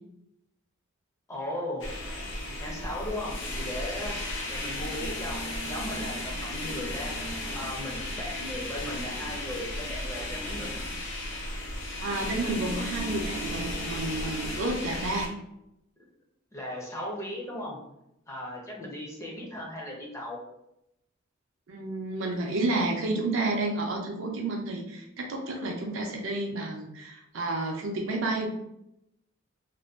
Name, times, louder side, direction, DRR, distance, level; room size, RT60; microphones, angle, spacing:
voice 1, 1.3-1.8 2.5-4.2 4.5-7.1 7.5-10.9 16.5-17.8 18.3-20.4, left 1 dB, 15° left, -3 dB, 0.5 m, -37 dB
sound 1, 1.8-15.3, left 1 dB, 60° left, 0.6 m, -35 dB
voice 2, 12.0-15.3 21.7-28.5, right 2 dB, 65° right, 1 dB, 0.4 m, -30 dB
2.5 x 2.1 x 2.3 m, 0.83 s
head